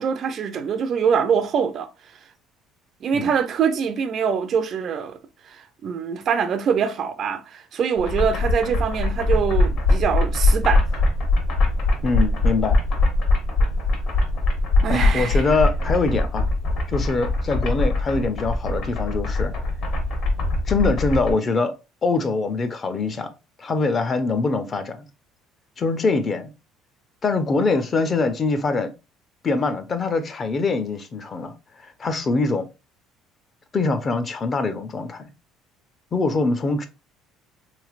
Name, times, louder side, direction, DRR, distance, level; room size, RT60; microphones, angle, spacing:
voice 1, 0.0-1.9 3.0-5.2 5.4-10.8 14.8-15.4, right 7 dB, 40° right, 0.3 m, -24 dB
sound 1, 8.0-21.3, left 2 dB, 55° left, 1.0 m, -22 dB
voice 2, 12.0-12.8 14.9-16.5 16.9-19.5 20.6-21.7 22.0-23.3 23.6-25.1 25.8-26.5 27.2-28.9 29.4-31.5 31.8-32.7 33.7-35.3 36.1-36.9, left 3 dB, 25° left, 0.4 m, -23 dB
3.2 x 3.1 x 2.3 m
cardioid pair, 155°, 0 cm